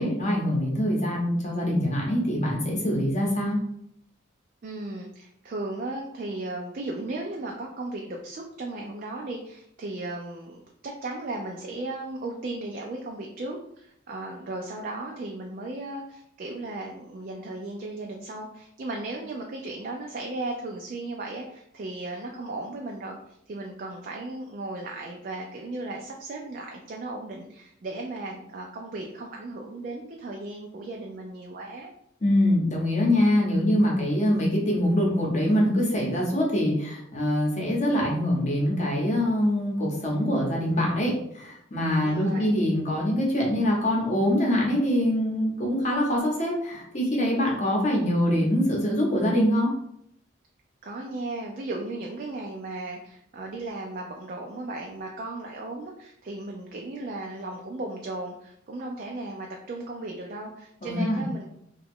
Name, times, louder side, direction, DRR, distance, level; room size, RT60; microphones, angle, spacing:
voice 1, 0.0-3.6 32.2-49.7 60.8-61.2, left 1 dB, 35° left, -2 dB, 0.8 m, -24 dB
voice 2, 4.6-31.9 42.0-42.6 50.8-61.5, right 2 dB, 45° right, 0 dB, 0.3 m, -36 dB
2.9 x 2.3 x 3.5 m, 0.74 s
head